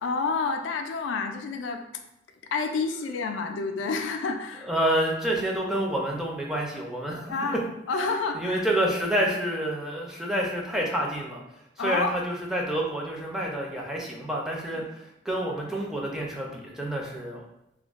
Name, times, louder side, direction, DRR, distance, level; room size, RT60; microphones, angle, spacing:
voice 1, 0.0-1.8 2.5-4.7 7.3-7.6 7.9-8.6 11.8-12.1 14.7-14.8, left 4 dB, 85° left, 5 dB, 0.3 m, -29 dB
voice 2, 4.7-7.3 8.3-11.4 11.8-17.4, right 1 dB, 5° right, -2 dB, 0.4 m, -28 dB
2.3 x 2.2 x 3.5 m, 0.84 s
head